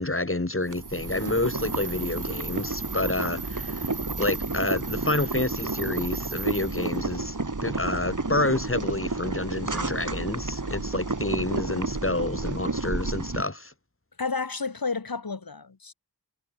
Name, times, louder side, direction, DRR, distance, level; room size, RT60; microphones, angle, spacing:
voice 1, 0.0-3.9 4.2-7.4 7.6-13.7, left 2 dB, 30° left, 4.5 m, -29 dB
Boiling, 0.7-13.4, right 3 dB, 45° right, 6.9 m, -31 dB
sound 1, 0.7-7.0, right 4 dB, 75° right, 3.9 m, -39 dB
voice 2, 14.2-15.9, left 4 dB, 55° left, 2.5 m, -31 dB
wide cardioid pair, 55°, 41 cm